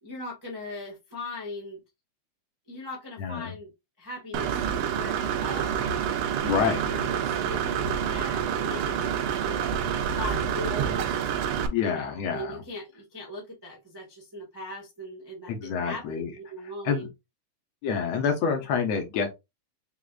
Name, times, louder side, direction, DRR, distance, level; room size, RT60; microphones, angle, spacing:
voice 1, 0.0-1.8 2.7-3.7 4.0-6.1 6.4-9.9 10.1-11.2 11.8-17.1, left 1 dB, 25° right, 0.5 m, -40 dB
voice 2, 3.2-3.5 6.4-6.9 11.7-12.6 15.5-16.3 16.8-17.1 17.8-19.3, left 6 dB, 70° left, 1.8 m, -27 dB
Engine / Mechanisms, 4.3-11.7, right 8 dB, 80° right, 1.6 m, -28 dB
4.9 x 3.5 x 2.4 m
omnidirectional pair, 3.4 m